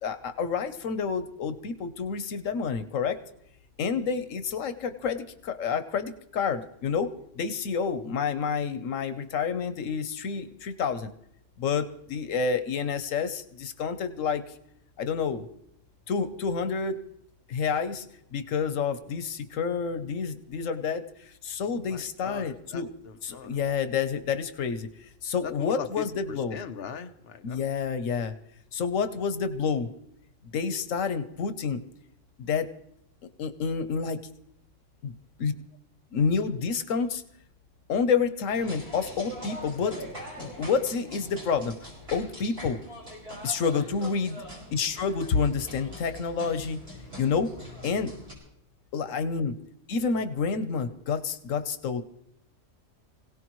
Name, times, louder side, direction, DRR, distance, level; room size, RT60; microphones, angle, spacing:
voice 1, 0.0-3.2 3.8-11.1 11.6-14.4 15.0-15.4 16.1-17.0 17.5-18.0 18.3-22.9 23.2-24.9 25.2-26.6 27.4-28.3 28.7-29.9 30.5-31.8 32.4-32.7 33.4-34.2 35.0-35.1 35.4-35.5 36.1-37.2 37.9-40.0 40.4-42.8 43.4-44.4 44.7-46.8 47.2-47.5 47.8-48.1 48.9-49.5 49.9-52.0, left 5 dB, 85° left, 10 dB, 1.3 m, -29 dB
voice 2, 21.8-23.6 25.4-27.6, left 6 dB, 55° left, 6 dB, 1.1 m, -40 dB
sound 1, 38.5-48.3, equal, 60° right, 5.9 m, -43 dB
25.0 x 17.0 x 3.1 m, 0.76 s
omnidirectional pair, 1.3 m